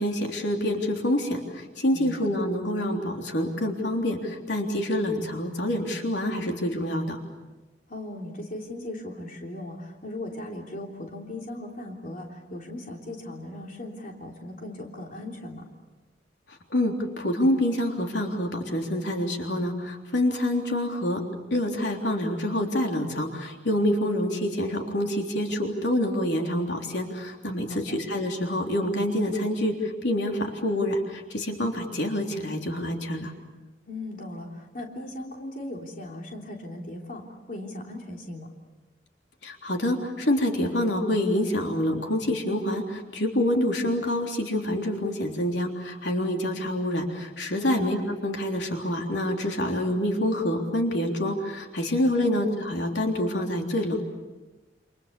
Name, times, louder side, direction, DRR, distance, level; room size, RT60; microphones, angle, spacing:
voice 1, 0.0-7.2 16.7-21.2 21.5-33.3 39.4-54.0, left 1 dB, 80° left, 2 dB, 3.6 m, -27 dB
voice 2, 1.9-2.2 7.9-15.7 27.7-28.0 33.9-38.5 47.6-47.9 52.2-52.4, left 1 dB, 50° left, 0 dB, 3.5 m, -38 dB
29.0 x 27.5 x 7.0 m, 1.2 s
head